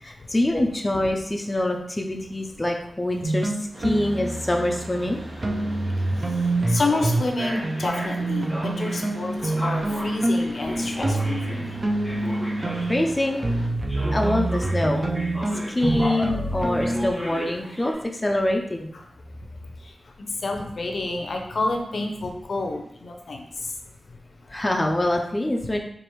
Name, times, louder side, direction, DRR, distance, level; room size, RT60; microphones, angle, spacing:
voice 1, 0.0-3.5 3.8-5.2 12.9-13.4 14.1-15.1 15.7-18.9 24.5-25.8, left 1 dB, 20° left, 2 dB, 0.4 m, -25 dB
sound 1, 3.1-13.3 13.9-16.4 16.7-17.9, equal, 10° right, 1.3 m, -37 dB
sound 2, 3.2-7.3 7.6-17.1, right 2 dB, 35° right, 0.5 m, -26 dB
Mechanisms, 3.7-13.7, right 1 dB, 65° right, 0.9 m, -42 dB
voice 2, 6.7-11.8 20.4-23.4, left 2 dB, 70° left, 3 dB, 0.6 m, -29 dB
4.7 x 2.5 x 3.0 m, 0.70 s
wide cardioid pair, 100°, 0 cm